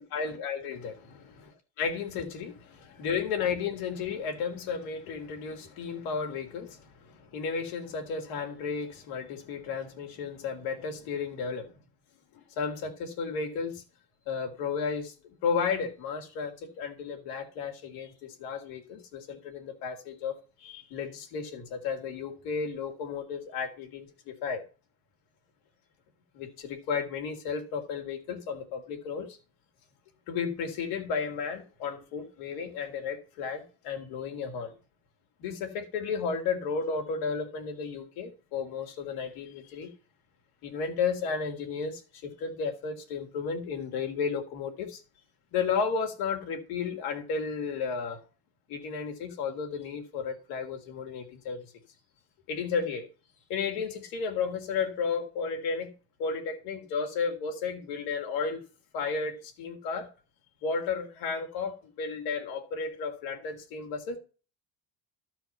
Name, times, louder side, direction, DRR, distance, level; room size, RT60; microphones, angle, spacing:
voice 1, 0.0-1.3 1.8-11.7 12.3-13.8 14.3-24.6 26.3-29.4 30.3-34.7 35.4-39.9 40.6-45.0 45.5-48.2 48.7-51.7 52.5-53.1 53.5-55.9 56.2-58.6 58.9-60.1 60.6-64.2, left 5 dB, 90° left, 2.4 m, -33 dB
13.0 x 4.7 x 5.5 m
supercardioid pair, 80°, 48 cm